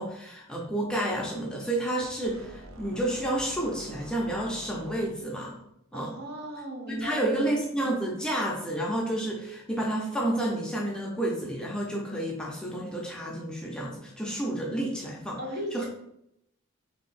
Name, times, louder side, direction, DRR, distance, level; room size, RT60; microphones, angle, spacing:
voice 1, 0.0-5.6 5.9-6.1 7.0-15.4 15.7-15.8, right 1 dB, 5° left, -3 dB, 0.5 m, -30 dB
sound 1, 2.2-5.4, right 1 dB, 65° right, 0.5 m, -46 dB
voice 2, 5.9-7.5 15.4-15.8, right 1 dB, 50° right, -1 dB, 0.9 m, -36 dB
3.5 x 2.8 x 4.2 m, 0.78 s
head